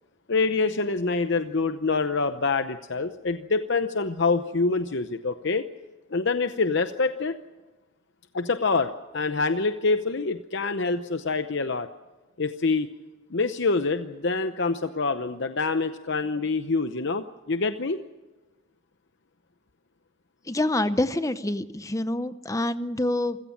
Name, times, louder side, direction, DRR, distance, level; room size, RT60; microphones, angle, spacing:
voice 1, 0.3-5.6 6.1-7.3 8.3-11.9 12.4-12.9 13.3-18.0, left 3 dB, 55° left, 9 dB, 0.8 m, -26 dB
voice 2, 20.5-23.4, left 1 dB, 15° left, 12 dB, 0.7 m, -26 dB
27.5 x 16.5 x 7.3 m, 1.2 s
head